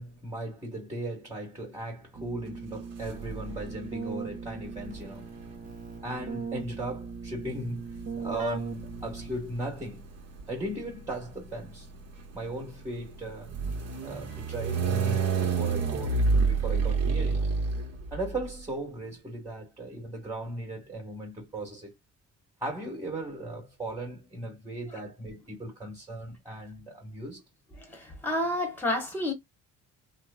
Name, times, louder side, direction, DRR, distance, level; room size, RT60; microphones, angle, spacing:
voice 1, 0.0-5.3 6.0-10.1 10.5-11.9 12.3-13.6 14.0-17.5 18.1-21.9 22.6-27.4, right 1 dB, 10° right, 1.5 m, -37 dB
Keyboard (musical), 2.1-9.7, right 5 dB, 25° right, 1.0 m, -39 dB
sound 1, 3.0-3.7 4.8-18.5, right 4 dB, 55° right, 1.2 m, -31 dB
voice 2, 27.8-29.3, left 1 dB, 5° left, 1.1 m, -30 dB
3.1 x 2.1 x 2.3 m
cardioid pair, 90°, 30 cm